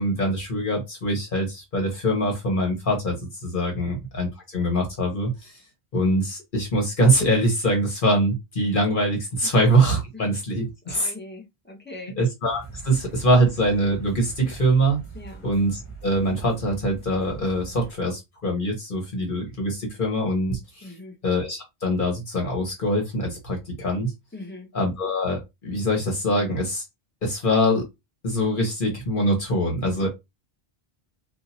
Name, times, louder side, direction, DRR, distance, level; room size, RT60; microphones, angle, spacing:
voice 1, 0.0-3.1 3.4-5.5 5.9-11.1 12.2-15.0 15.4-20.9 21.2-24.1 24.7-26.8 27.2-27.8 28.2-30.1, right 1 dB, 55° left, 1.3 m, -23 dB
voice 2, 10.8-12.2 15.1-15.5 20.8-21.1 24.3-24.7 29.9-30.1, left 2 dB, 10° left, 1.0 m, -41 dB
sound 1, 12.5-17.9, right 4 dB, 30° left, 1.1 m, -41 dB
2.7 x 2.6 x 4.1 m
omnidirectional pair, 1.1 m